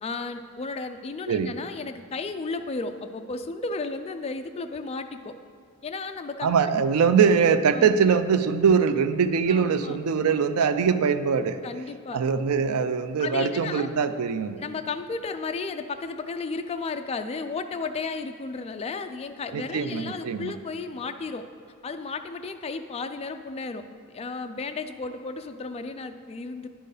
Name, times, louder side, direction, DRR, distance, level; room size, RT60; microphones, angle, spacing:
voice 1, 0.0-5.4 5.8-6.6 7.7-8.0 9.5-10.0 11.6-12.2 13.2-13.9 14.6-21.5 21.8-26.7, left 4 dB, 25° left, 8 dB, 0.3 m, -34 dB
voice 2, 6.4-11.6 12.1-14.6 19.5-20.5, right 6 dB, 75° right, 11 dB, 0.4 m, -22 dB
10.0 x 4.5 x 4.9 m, 2.2 s
head